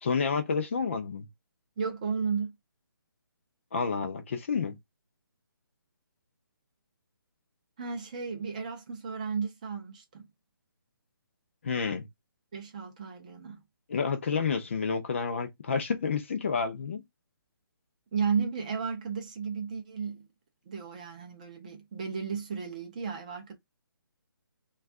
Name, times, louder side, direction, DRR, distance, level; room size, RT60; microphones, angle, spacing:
voice 1, 0.0-1.3 3.7-4.7 11.6-12.1 13.9-17.0, left 5 dB, 35° left, 0.5 m, -29 dB
voice 2, 1.8-2.5 7.8-10.3 12.5-13.6 18.1-20.3 20.7-23.6, right 6 dB, 20° right, 0.5 m, -33 dB
2.5 x 2.3 x 3.5 m
hypercardioid pair, 170°, 12 cm